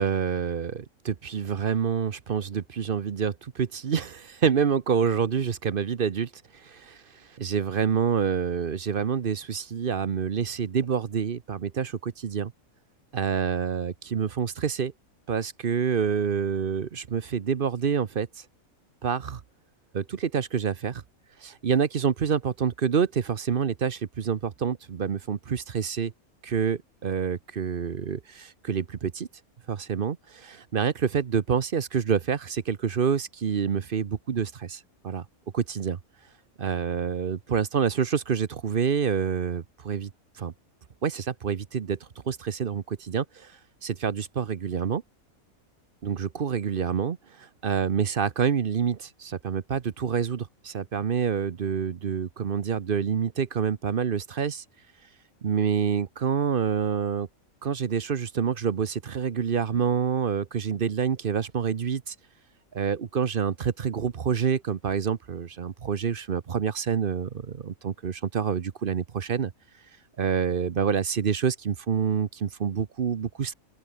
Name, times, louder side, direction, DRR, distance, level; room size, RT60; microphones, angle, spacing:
voice 1, 0.0-6.3 6.6-7.0 7.4-12.5 13.1-14.9 15.3-18.3 19.0-19.4 19.9-21.0 21.4-26.1 26.4-29.3 29.7-35.2 35.5-36.0 36.6-40.1 40.4-40.5 41.0-42.0 42.3-43.5 43.8-45.0 46.0-54.6 55.4-57.3 57.6-62.1 62.7-69.5 70.2-73.5, right 7 dB, 45° right, 0.9 m, -27 dB
open air
omnidirectional pair, 1.5 m